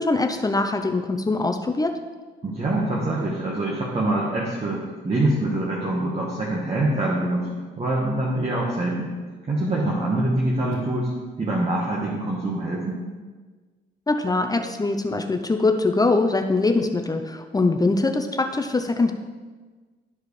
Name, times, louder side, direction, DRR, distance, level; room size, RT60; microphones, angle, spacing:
voice 1, 0.0-2.0 14.1-19.1, left 3 dB, 20° left, 5 dB, 0.5 m, -22 dB
voice 2, 2.4-7.5 7.8-9.1 9.4-11.1 11.4-13.0, right 1 dB, 30° right, -4 dB, 1.4 m, -24 dB
12.5 x 4.7 x 3.2 m, 1.4 s
cardioid pair, 90°, 20 cm